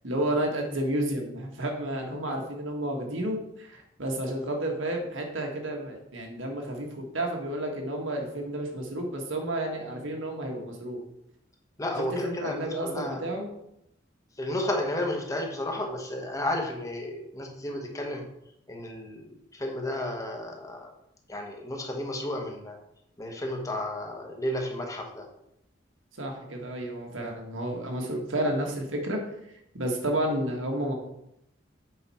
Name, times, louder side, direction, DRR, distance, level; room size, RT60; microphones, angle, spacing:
voice 1, 0.0-11.0 12.0-13.5 26.2-29.2 29.7-30.9, right 1 dB, 90° right, 2 dB, 1.6 m, -31 dB
voice 2, 11.8-13.2 14.4-18.2 18.7-20.9 21.3-22.8 23.2-25.3, left 1 dB, 15° left, 2 dB, 1.1 m, -32 dB
7.8 x 5.1 x 4.3 m, 0.80 s
head